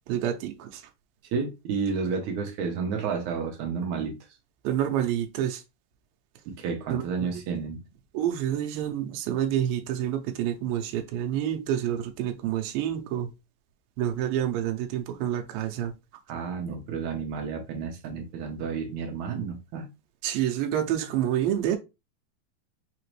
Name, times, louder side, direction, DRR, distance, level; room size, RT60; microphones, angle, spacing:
voice 1, 0.1-0.8 4.6-5.6 6.9-7.3 8.1-13.3 14.0-15.9 20.2-21.8, right 11 dB, 90° right, 2.5 m, -28 dB
voice 2, 1.3-4.1 6.5-7.8 16.3-19.9, right 5 dB, 70° right, 2.1 m, -31 dB
5.9 x 2.8 x 3.1 m
omnidirectional pair, 4.1 m